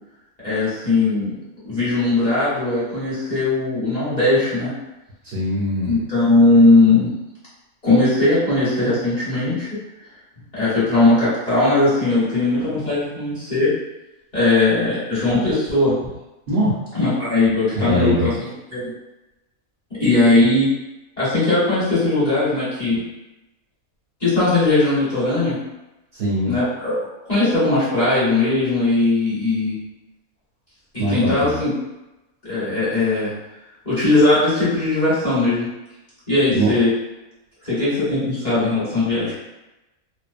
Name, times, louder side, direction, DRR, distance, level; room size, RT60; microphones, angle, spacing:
voice 1, 0.4-1.3 1.6-4.7 5.8-7.1 7.8-9.7 10.5-13.7 14.3-15.9 16.9-18.8 20.0-20.7 21.2-23.0 24.2-25.6 26.4-27.0 27.3-29.8 30.9-31.7 32.4-33.3 33.8-35.7 36.3-36.9 37.6-39.3, left 2 dB, 30° left, -12 dB, 1.1 m, -19 dB
voice 2, 5.2-6.0 16.5-16.7 17.7-18.3 26.2-26.6 31.0-31.6 36.5-36.7, equal, 55° right, -9 dB, 0.9 m, -21 dB
2.5 x 2.0 x 2.4 m, 0.98 s
omnidirectional pair, 1.5 m